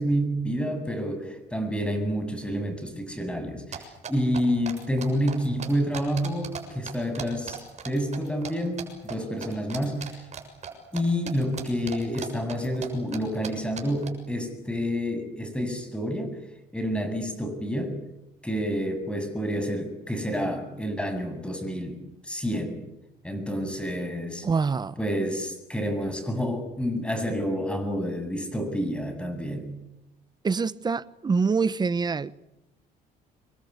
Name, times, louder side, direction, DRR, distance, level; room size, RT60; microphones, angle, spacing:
voice 1, 0.0-7.6 7.8-10.1 10.9-16.3 16.7-18.0 18.4-22.0 22.2-22.8 23.2-24.5 25.0-29.7, equal, 5° left, 7.7 m, -29 dB
sound 1, 3.7-6.6 6.9-8.5 8.8-9.1 9.4-11.0 11.3-12.9 13.1-13.2 13.4-13.5 13.8-14.1, right 7 dB, 40° right, 7.0 m, -37 dB
voice 2, 24.4-25.0 30.4-32.3, right 4 dB, 25° right, 1.1 m, -25 dB
27.5 x 22.5 x 8.4 m
cardioid pair, 110°, 17 cm